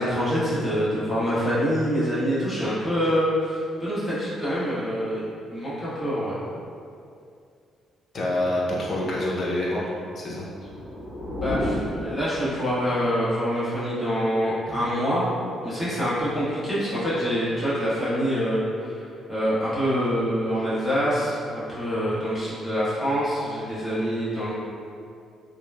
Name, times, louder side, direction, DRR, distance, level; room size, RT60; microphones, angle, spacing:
voice 1, 0.0-5.2 5.5-6.4 11.4-15.4 15.6-24.5, equal, 5° left, -13 dB, 1.2 m, -25 dB
voice 2, 8.1-10.5, left 1 dB, 50° left, -4 dB, 0.5 m, -27 dB
sound 1, 10.3-13.0, equal, 30° right, 1.1 m, -32 dB
2.8 x 2.2 x 2.3 m, 2.4 s
cardioid pair, 90°, 0 cm